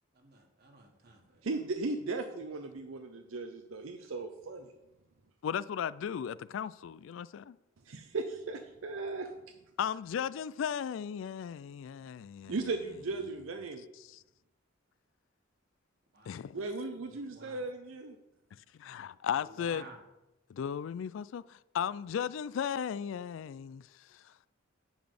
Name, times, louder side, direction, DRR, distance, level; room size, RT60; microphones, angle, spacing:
voice 1, 0.1-1.5 16.1-16.4 17.1-17.6 19.3-20.0, right 2 dB, 55° right, 1.5 m, -53 dB
voice 2, 1.4-4.7 7.9-9.3 12.5-13.8 16.5-18.2, right 3 dB, 90° right, 0.6 m, -37 dB
voice 3, 5.4-7.6 9.8-12.6 14.0-14.2 16.3-16.4 18.7-19.8 20.5-24.3, left 8 dB, 70° left, 0.3 m, -36 dB
10.0 x 4.0 x 6.5 m
head